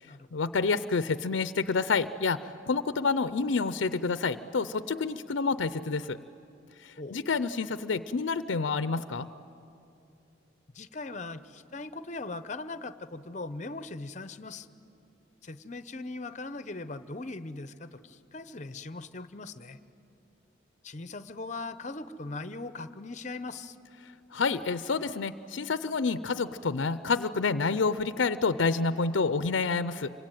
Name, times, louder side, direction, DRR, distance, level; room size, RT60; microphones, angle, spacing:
voice 1, 0.3-2.4 2.7-6.2 6.8-9.3 24.3-30.1, left 4 dB, 85° left, 14 dB, 0.6 m, -28 dB
voice 2, 10.7-14.7 15.4-19.8 20.8-23.8, left 3 dB, 40° left, 13 dB, 0.8 m, -40 dB
26.5 x 24.5 x 9.1 m, 2.8 s
head